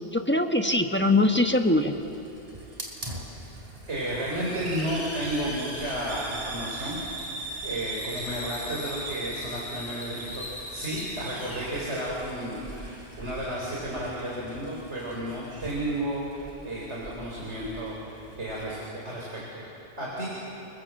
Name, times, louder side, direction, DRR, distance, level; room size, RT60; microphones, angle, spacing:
voice 1, 0.1-1.9, left 2 dB, 10° left, 5 dB, 1.1 m, -22 dB
Hiss, 0.9-18.9, right 1 dB, 30° right, 3.5 m, -39 dB
voice 2, 3.9-7.0 7.6-19.4 20.0-20.3, right 1 dB, 70° right, -4 dB, 4.4 m, -32 dB
28.5 x 21.0 x 7.7 m, 2.9 s
omnidirectional pair, 1.2 m